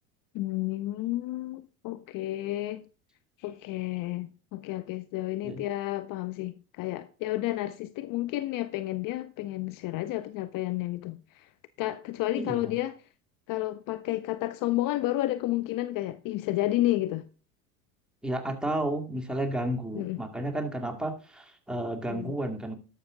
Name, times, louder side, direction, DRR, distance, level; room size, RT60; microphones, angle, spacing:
voice 1, 0.3-2.9 3.4-11.5 11.8-12.9 13.5-17.3 19.9-20.2 22.1-22.4, left 16 dB, 50° left, 0.7 m, -31 dB
voice 2, 12.4-12.7 18.2-22.8, right 1 dB, ahead, 2.1 m, -32 dB
12.0 x 6.5 x 3.7 m
hypercardioid pair, 80°, 44 cm